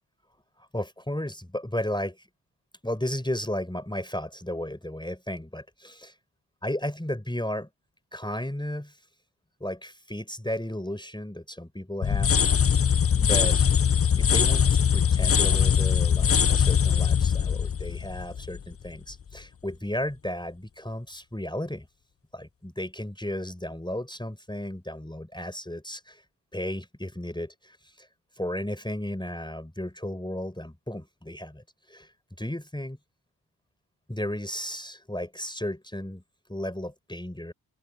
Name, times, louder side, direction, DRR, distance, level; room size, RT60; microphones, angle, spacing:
voice 1, 0.6-2.3 2.8-6.1 6.6-7.7 8.1-9.0 9.6-12.7 13.2-13.7 14.2-21.9 22.3-26.2 26.5-28.1 28.4-32.1 32.4-33.0 34.1-36.2 36.5-37.5, left 1 dB, 10° left, 4.2 m, -34 dB
sound 1, 12.0-18.9, left 7 dB, 35° left, 0.5 m, -22 dB
open air
cardioid pair, 40°, 44 cm